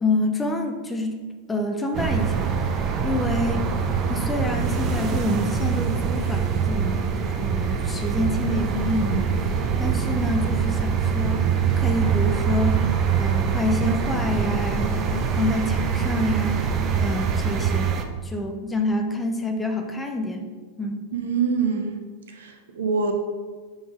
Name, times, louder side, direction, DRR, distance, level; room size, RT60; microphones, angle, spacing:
voice 1, 0.0-1.2 1.5-2.6 3.0-3.7 4.1-12.9 13.1-17.9 18.2-20.4 20.8-21.1, left 1 dB, 10° left, 4 dB, 0.6 m, -27 dB
sound 1, 1.9-18.1, right 6 dB, 30° right, 0.5 m, -24 dB
voice 2, 21.1-22.0 22.3-23.1, right 5 dB, 60° right, 5 dB, 0.8 m, -25 dB
4.7 x 4.0 x 5.0 m, 1.4 s
figure-of-eight pair, 90°, 0 cm